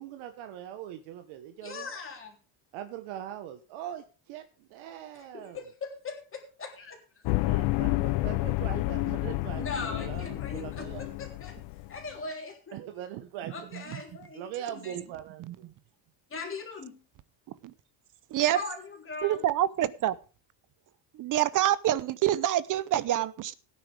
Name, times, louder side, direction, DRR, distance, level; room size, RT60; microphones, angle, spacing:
voice 1, 0.0-1.9 2.7-5.6 7.4-11.1 12.7-13.7 14.3-15.7, right 11 dB, 70° right, 1.4 m, -41 dB
voice 2, 1.6-2.4 5.1-7.3 9.5-11.6 11.9-12.8 13.5-14.5 14.7-15.0 16.3-17.0 18.5-19.4, left 4 dB, 25° left, 3.6 m, -40 dB
sound 1, 7.3-12.0, left 20 dB, 60° left, 0.6 m, -30 dB
voice 3, 19.2-20.2 21.1-23.5, right 12 dB, 40° right, 0.7 m, -27 dB
17.0 x 9.8 x 3.5 m
cardioid pair, 150°, 49 cm